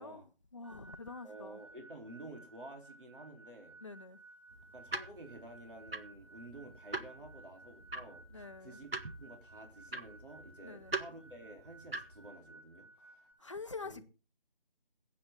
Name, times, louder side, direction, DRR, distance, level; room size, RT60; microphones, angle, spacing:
voice 1, 0.0-1.6 3.8-4.2 8.3-8.8 10.6-10.9 13.4-14.1, left 4 dB, 30° left, 0.7 m, -46 dB
sound 1, 0.6-13.3, right 2 dB, 20° right, 4.6 m, -58 dB
voice 2, 1.2-3.8 4.7-8.9 9.2-13.3 13.8-14.1, right 1 dB, 65° right, 3.5 m, -51 dB
sound 2, 4.5-12.3, right 2 dB, 80° right, 1.5 m, -44 dB
21.5 x 8.7 x 3.7 m
figure-of-eight pair, 160°, 29 cm